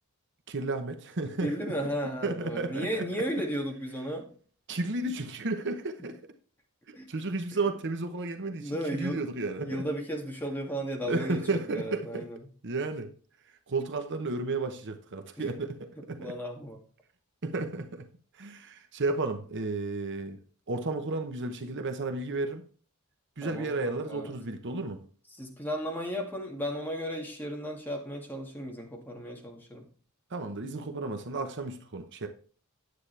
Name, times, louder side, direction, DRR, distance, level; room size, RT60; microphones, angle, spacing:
voice 1, 0.5-1.9 2.2-3.4 4.7-6.3 6.9-9.8 11.0-12.3 12.6-13.1 13.7-16.4 17.4-18.1 18.3-20.4 20.7-22.6 23.4-25.0 30.3-32.3, right 3 dB, 55° right, 7 dB, 0.9 m, -33 dB
voice 2, 1.4-4.3 7.0-7.1 8.6-9.2 9.6-12.4 15.4-15.5 16.2-16.8 23.4-24.3 25.4-29.8, equal, 10° left, 0 dB, 2.1 m, -34 dB
9.6 x 8.5 x 3.3 m, 0.42 s
head